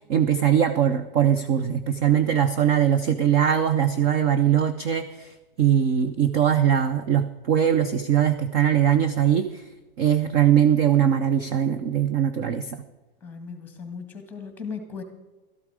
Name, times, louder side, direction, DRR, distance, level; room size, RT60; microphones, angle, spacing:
voice 1, 0.0-9.6 10.0-12.8, right 9 dB, 25° right, 10 dB, 0.4 m, -21 dB
voice 2, 13.2-15.0, left 5 dB, 5° left, 7 dB, 1.7 m, -37 dB
13.0 x 12.5 x 4.8 m, 1.1 s
supercardioid pair, 165°, 29 cm